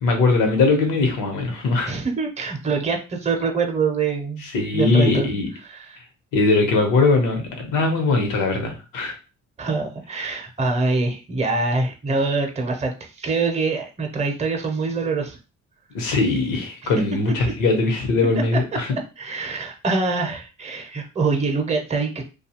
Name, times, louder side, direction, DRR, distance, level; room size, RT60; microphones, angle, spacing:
voice 1, 0.0-1.9 4.4-5.5 6.3-9.1 15.9-19.0, left 3 dB, 90° left, 3 dB, 0.9 m, -20 dB
voice 2, 1.9-4.5 4.7-5.3 5.6-6.0 9.6-15.4 16.8-16.9 19.2-22.2, right 4 dB, 20° right, 4 dB, 0.6 m, -24 dB
2.6 x 2.3 x 2.9 m, 0.31 s
cardioid pair, 90°, 30 cm